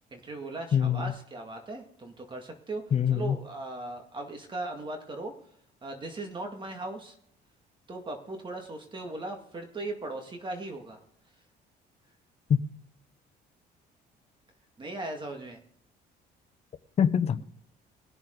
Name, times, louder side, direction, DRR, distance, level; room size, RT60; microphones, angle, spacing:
voice 1, 0.1-2.8 3.1-5.3 5.8-7.2 7.9-11.0 14.8-15.6, right 2 dB, 30° right, 2.1 m, -38 dB
voice 2, 0.7-1.1 2.9-3.4 12.5-12.6 17.0-17.4, left 8 dB, 40° left, 0.8 m, -24 dB
20.0 x 7.3 x 4.0 m
cardioid pair, 110°, 17 cm